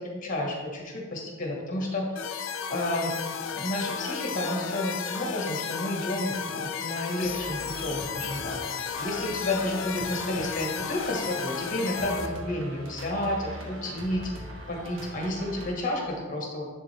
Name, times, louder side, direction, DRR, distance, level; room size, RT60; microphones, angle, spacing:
voice 1, 0.0-2.0 2.7-3.2 3.5-8.7 9.0-14.3 14.7-16.7, left 1 dB, 40° left, -1 dB, 1.5 m, -31 dB
sound 1, 2.2-12.3, left 7 dB, 75° left, 0.5 m, -34 dB
sound 2, 7.2-15.7, right 1 dB, 85° right, 1.2 m, -41 dB
10.5 x 3.7 x 3.4 m, 1.5 s
head